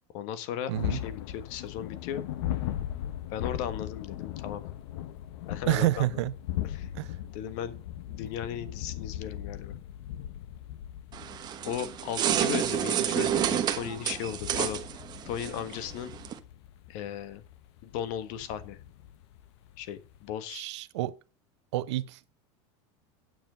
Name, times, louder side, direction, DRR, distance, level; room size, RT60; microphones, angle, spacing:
voice 1, 0.1-2.2 3.3-4.6 5.5-6.1 6.7-6.9 7.3-7.8 8.1-9.8 11.6-14.8 15.3-16.1 16.9-17.4 17.8-18.8 19.8-20.7, left 9 dB, 55° left, 1.5 m, -36 dB
sound 1, 0.7-20.3, left 12 dB, 75° left, 1.0 m, -39 dB
voice 2, 0.7-1.0 5.7-6.3 6.9-7.2 20.5-21.1 21.7-22.2, right 15 dB, 85° right, 0.8 m, -28 dB
sound 2, 11.1-16.4, right 10 dB, 30° right, 1.1 m, -30 dB
9.4 x 7.4 x 5.1 m
supercardioid pair, 155°, 15 cm